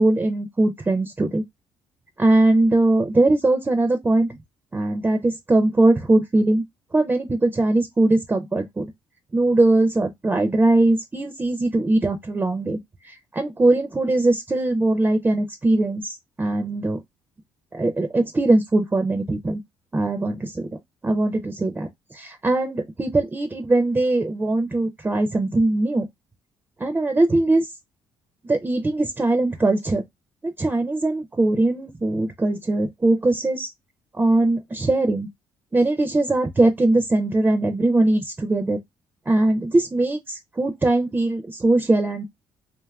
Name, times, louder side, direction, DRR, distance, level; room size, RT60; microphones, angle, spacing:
voice 1, 0.0-1.4 2.2-4.3 4.7-6.6 6.9-8.9 9.3-12.8 13.0-17.0 17.7-19.6 19.9-20.8 21.0-26.1 26.8-27.7 28.4-30.0 30.4-33.7 34.1-35.3 35.7-38.8 39.3-42.3, right 2 dB, 20° right, 0.4 m, -21 dB
2.7 x 2.4 x 2.2 m
supercardioid pair, 70°, 10 cm